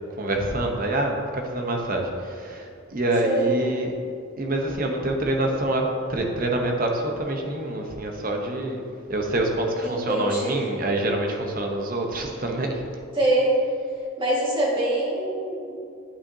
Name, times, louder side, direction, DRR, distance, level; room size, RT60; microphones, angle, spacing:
voice 1, 0.1-3.9 4.4-8.8 9.1-12.8, right 1 dB, 40° right, 2 dB, 0.8 m, -26 dB
voice 2, 3.2-3.5 9.8-10.6 13.2-13.6 14.2-15.8, right 1 dB, 25° right, -6 dB, 1.8 m, -24 dB
11.5 x 5.6 x 2.8 m, 2.5 s
head